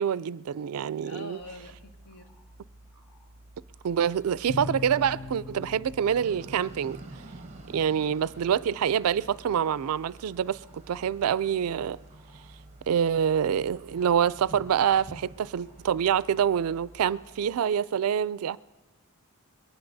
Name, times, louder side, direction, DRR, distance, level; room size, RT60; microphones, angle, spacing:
voice 1, 0.0-1.4 3.8-7.0 7.7-12.0 12.9-18.6, right 8 dB, 85° right, 0.4 m, -26 dB
voice 2, 1.1-2.3, left 2 dB, 90° left, 1.7 m, -44 dB
sound 1, 1.4-17.6, right 1 dB, 10° right, 1.5 m, -54 dB
sound 2, 4.5-9.6, left 2 dB, 60° left, 0.8 m, -42 dB
sound 3, 6.1-17.5, right 2 dB, 35° right, 0.9 m, -50 dB
22.5 x 18.5 x 2.7 m
head